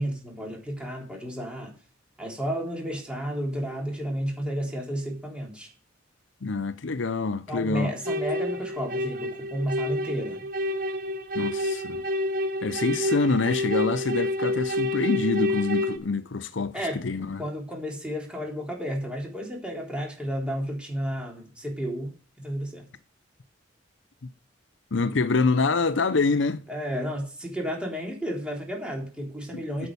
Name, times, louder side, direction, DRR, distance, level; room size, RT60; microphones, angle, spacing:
voice 1, 0.0-1.7 2.2-5.7 7.5-10.5 16.7-17.0 17.4-22.9 26.7-29.9, equal, 5° right, 3.6 m, -32 dB
voice 2, 6.4-7.9 11.3-12.0 12.6-17.4 24.2-24.3 24.9-26.6 29.5-29.9, left 3 dB, 75° left, 0.7 m, -26 dB
sound 1, 8.1-16.0, left 1 dB, 50° right, 1.3 m, -28 dB
8.8 x 7.9 x 6.8 m
head